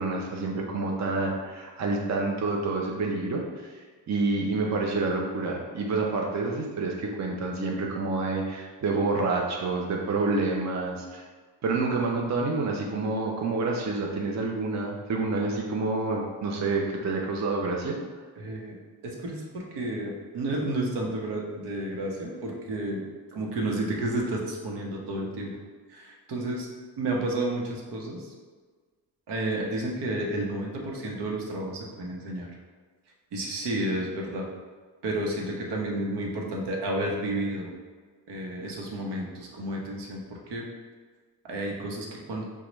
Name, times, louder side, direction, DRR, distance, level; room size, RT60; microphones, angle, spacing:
voice 1, 0.0-3.7 4.1-11.2 11.6-18.0, right 3 dB, 45° right, 0 dB, 0.6 m, -28 dB
voice 2, 18.4-18.8 19.0-23.1 23.3-25.5 25.9-26.7 27.0-28.3 29.3-32.5 33.3-34.5 35.0-37.7 38.3-40.6 41.5-42.4, right 1 dB, 80° right, -1 dB, 1.0 m, -31 dB
6.4 x 2.3 x 3.0 m, 1.5 s
cardioid pair, 115°, 40 cm